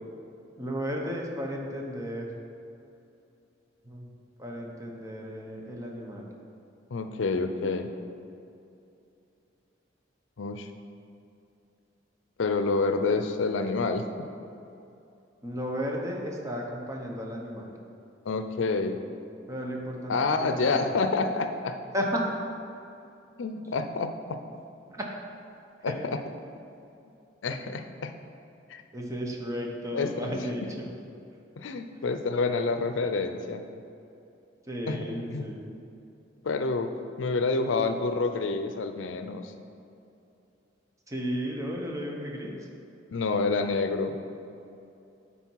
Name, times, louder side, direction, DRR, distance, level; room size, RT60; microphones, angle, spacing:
voice 1, 0.6-2.3 3.8-4.1 4.4-6.3 15.4-17.8 19.5-20.9 21.9-22.2 24.9-25.1 25.8-26.0 28.9-30.6 31.9-32.1 34.6-35.8 41.1-42.7, equal, 15° right, -1 dB, 0.9 m, -34 dB
voice 2, 6.9-7.9 10.4-10.7 12.4-14.2 18.3-19.0 20.1-21.8 23.4-24.4 25.8-25.9 27.4-28.1 28.7-28.8 29.9-30.4 31.6-33.6 34.9-35.0 35.3-35.5 36.4-39.5 43.1-44.2, left 3 dB, 90° left, 8 dB, 0.5 m, -28 dB
9.4 x 4.1 x 4.6 m, 2.7 s
head